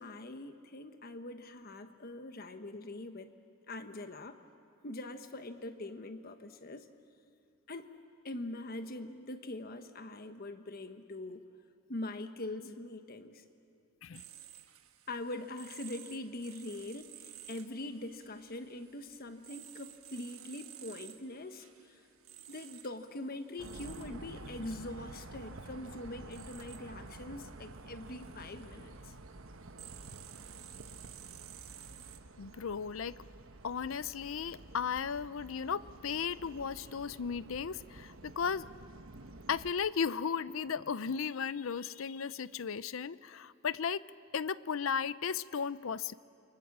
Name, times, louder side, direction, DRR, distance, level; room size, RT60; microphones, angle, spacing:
voice 1, 0.0-3.3 3.7-4.4 4.8-6.9 7.7-7.9 8.2-11.5 11.9-13.4 15.1-22.1 22.5-29.1, left 2 dB, 45° left, 9 dB, 1.2 m, -43 dB
sound 1, 14.1-32.2, right 12 dB, 90° right, 1.3 m, -54 dB
sound 2, 23.6-39.7, right 2 dB, 70° right, 1.1 m, -50 dB
voice 2, 32.4-33.2 33.6-38.7 39.5-44.0 44.3-46.1, left 6 dB, 70° left, 18 dB, 0.5 m, -35 dB
29.0 x 24.0 x 7.4 m, 2.6 s
head